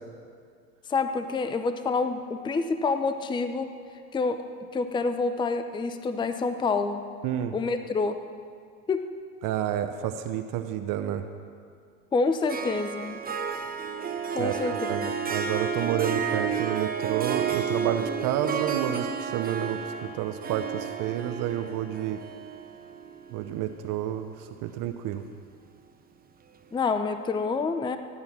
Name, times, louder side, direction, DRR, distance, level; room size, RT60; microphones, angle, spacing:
voice 1, 0.9-3.7 4.1-4.4 4.7-7.0 7.5-8.2 8.9-9.1 12.1-13.2 14.3-14.9 26.7-28.0, left 4 dB, 10° left, 9 dB, 0.6 m, -27 dB
voice 2, 7.2-7.5 9.4-11.2 14.4-22.2 23.3-25.2, right 10 dB, 45° right, 8 dB, 0.9 m, -30 dB
Harp, 12.5-23.9, right 7 dB, 20° right, 1.1 m, -31 dB
16.5 x 9.5 x 6.1 m, 2.2 s
hypercardioid pair, 100°, 43 cm